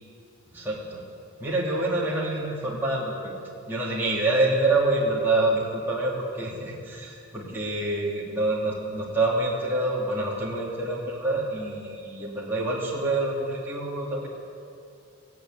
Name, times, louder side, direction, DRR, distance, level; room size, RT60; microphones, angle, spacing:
voice 1, 0.5-1.0 1.4-3.3 3.7-14.3, right 2 dB, 10° right, -6 dB, 3.0 m, -26 dB
17.0 x 17.0 x 9.3 m, 2.5 s
head